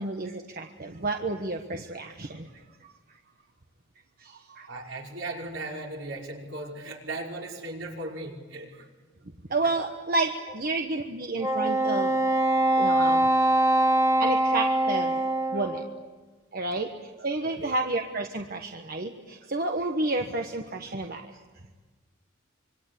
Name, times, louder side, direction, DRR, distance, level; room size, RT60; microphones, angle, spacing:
voice 1, 0.0-2.5 4.2-4.7 9.5-12.2 12.8-13.3 14.2-15.2 15.5-15.9 16.5-16.9 17.2-21.3, right 2 dB, 50° right, 4 dB, 1.3 m, -30 dB
voice 2, 4.7-8.8 9.6-9.7 17.4-17.8, right 2 dB, 70° right, -1 dB, 5.4 m, -37 dB
Wind instrument woodwind instrument, 11.4-16.0, right 1 dB, 15° right, 1.2 m, -23 dB
26.5 x 23.5 x 8.5 m, 1.4 s
head